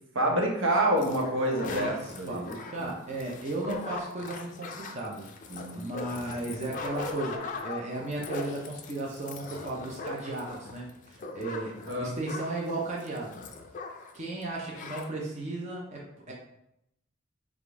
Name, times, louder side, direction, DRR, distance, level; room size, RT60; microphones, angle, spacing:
voice 1, 0.1-2.4 2.8-2.9 5.5-5.9 11.9-12.2, right 1 dB, 65° right, 0 dB, 0.9 m, -27 dB
sound 1, 1.0-14.2 14.4-14.5 14.7-15.1, left 3 dB, 40° left, 0.4 m, -39 dB
voice 2, 1.7-5.3 5.7-11.7 12.0-13.3 14.1-16.3, right 2 dB, 35° right, -3 dB, 0.6 m, -35 dB
3.5 x 2.5 x 4.6 m, 0.81 s
head